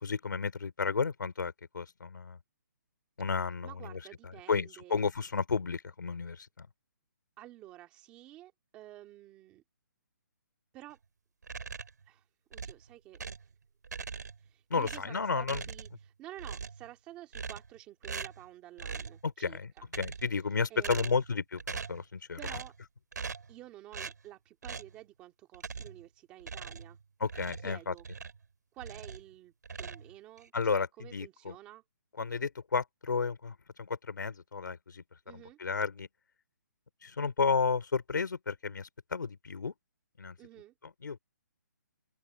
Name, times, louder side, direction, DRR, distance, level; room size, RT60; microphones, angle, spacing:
voice 1, 0.0-2.4 3.2-4.0 4.5-6.7 14.7-15.6 19.2-22.4 27.2-27.9 30.5-31.5 32.2-36.1 37.0-39.7 40.2-40.4 41.0-41.2, left 5 dB, 85° left, 4.2 m, -32 dB
voice 2, 3.6-5.0 7.4-9.6 10.7-11.0 12.1-12.2 12.5-13.2 14.4-19.9 20.7-21.2 22.4-22.7 23.5-27.0 27.5-28.1 28.7-31.8 35.3-35.6 40.4-40.7, right 14 dB, 10° right, 2.3 m, -51 dB
sound 1, 11.4-12.0 12.5-13.5 13.8-14.5 14.8-16.1 16.4-16.9 17.3-17.8 18.0-18.5 18.8-19.2 19.8-20.4 20.8-21.3 21.6-22.0 22.4-22.8 23.1-23.5 23.9-24.2 24.6-25.0 25.5-26.0 26.4-28.5 28.8-29.3 29.6-30.5, right 5 dB, 65° right, 4.2 m, -41 dB
open air
hypercardioid pair, 180°, 10 cm